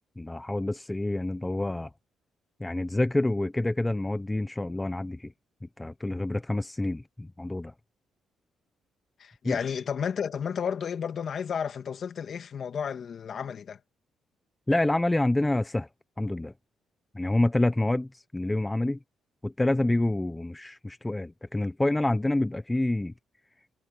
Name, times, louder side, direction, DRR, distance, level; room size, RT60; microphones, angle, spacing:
voice 1, 0.0-1.9 2.6-5.3 5.8-7.7 9.4-9.6 14.7-15.9 16.2-16.5 17.1-19.0 19.4-23.1, left 2 dB, 10° left, 0.7 m, -27 dB
voice 2, 9.2-13.8, left 7 dB, 55° left, 2.0 m, -32 dB
cardioid pair, 90°, 0 cm